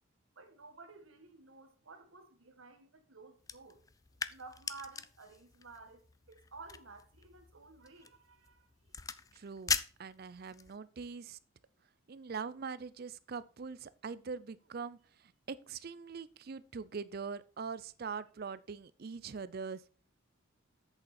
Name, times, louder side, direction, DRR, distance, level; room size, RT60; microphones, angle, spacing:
voice 1, 0.4-3.8 4.3-8.7, right 3 dB, 75° right, 1.5 m, -53 dB
sound 1, 3.4-10.8, left 6 dB, 15° left, 0.3 m, -41 dB
voice 2, 9.3-9.7 10.0-11.4 12.1-15.0 15.5-19.8, right 5 dB, 50° right, 0.4 m, -42 dB
8.1 x 6.9 x 4.2 m
head